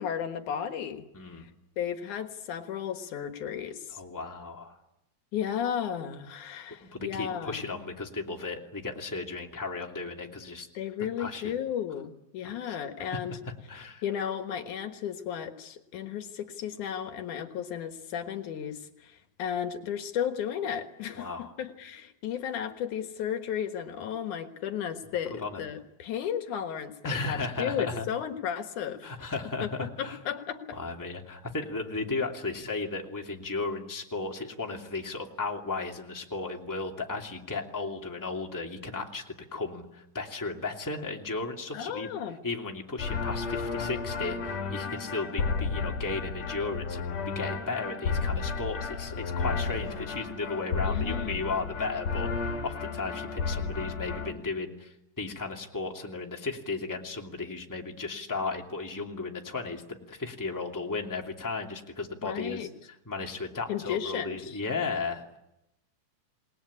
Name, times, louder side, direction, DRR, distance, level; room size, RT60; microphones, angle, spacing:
voice 1, 0.0-1.1 1.3-1.5 1.8-4.0 5.3-7.6 10.7-13.4 14.0-29.2 29.6-30.8 41.7-42.4 50.8-51.5 62.2-62.7 63.7-64.6, left 9 dB, 75° left, 8 dB, 2.9 m, -34 dB
voice 2, 1.1-1.5 3.9-4.8 6.8-10.7 11.2-11.5 12.4-13.2 13.7-14.0 21.2-21.5 25.4-25.6 27.0-28.1 29.0-30.2 30.7-42.1 42.4-62.7 63.0-65.2, left 3 dB, 5° left, 1 dB, 2.3 m, -35 dB
sound 1, 43.0-54.3, left 4 dB, 55° left, 3.7 m, -32 dB
28.0 x 20.0 x 9.9 m, 0.86 s
omnidirectional pair, 3.6 m